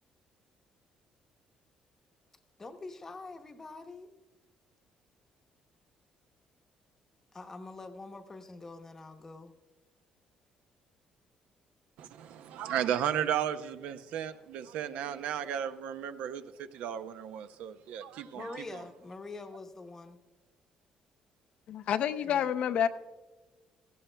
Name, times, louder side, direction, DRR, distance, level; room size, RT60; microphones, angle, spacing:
voice 1, 2.6-4.1 7.3-9.5 18.3-20.2 22.2-22.5, left 3 dB, 20° left, 0.8 m, -45 dB
voice 2, 12.0-18.8, right 9 dB, 80° right, 0.6 m, -34 dB
voice 3, 21.7-22.9, left 9 dB, 60° left, 0.5 m, -28 dB
17.0 x 15.5 x 2.2 m
cardioid pair, 155°, 2 cm